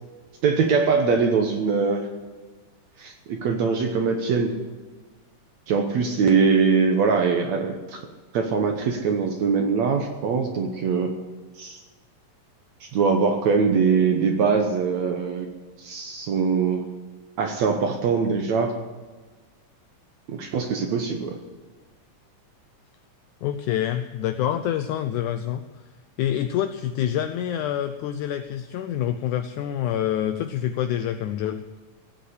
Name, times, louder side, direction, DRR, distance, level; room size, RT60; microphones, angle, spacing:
voice 1, 0.4-2.1 3.0-4.6 5.7-8.1 8.3-11.1 11.6-11.8 12.8-15.5 15.8-16.8 17.4-18.7 20.3-21.4, right 5 dB, 65° right, 4 dB, 2.1 m, -22 dB
voice 2, 23.4-25.7 26.2-31.7, left 11 dB, 80° left, 9 dB, 1.9 m, -26 dB
16.5 x 8.3 x 8.2 m, 1.3 s
omnidirectional pair, 4.0 m